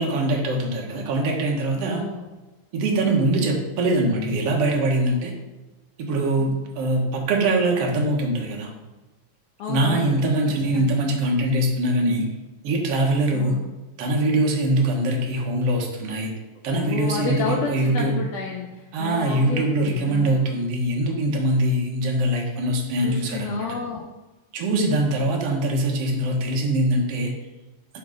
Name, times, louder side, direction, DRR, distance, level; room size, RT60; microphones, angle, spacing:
voice 1, 0.0-2.0 2.7-5.3 6.0-8.7 9.7-12.3 12.6-13.6 14.0-16.3 16.6-18.2 18.9-23.7 24.5-27.3, right 1 dB, 60° right, 0 dB, 1.7 m, -23 dB
voice 2, 1.8-2.3 2.9-3.2 6.4-6.6 9.6-10.4 10.7-11.1 13.3-13.7 16.7-20.4 23.0-24.0 24.8-25.0, left 5 dB, 75° left, -1 dB, 2.0 m, -31 dB
11.0 x 3.9 x 3.8 m, 1.1 s
omnidirectional pair, 4.1 m